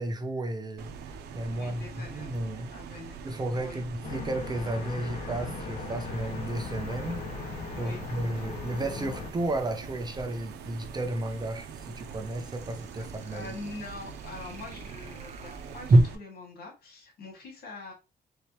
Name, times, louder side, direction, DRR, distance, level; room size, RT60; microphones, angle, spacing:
voice 1, 0.0-2.7 3.2-7.2 7.7-13.5, right 1 dB, 25° right, 0.6 m, -33 dB
sound 1, 0.8-16.2, right 6 dB, 85° right, 0.6 m, -43 dB
voice 2, 1.5-2.3 2.7-3.2 3.5-3.8 7.5-8.0 8.4-8.5 13.0-17.9, left 3 dB, 70° left, 2.1 m, -44 dB
sound 2, 2.3-2.4 5.9-16.0, right 1 dB, 40° right, 0.9 m, -32 dB
sound 3, 4.0-9.3, left 4 dB, 50° left, 1.3 m, -38 dB
4.1 x 3.4 x 3.0 m
cardioid pair, 125°, 17 cm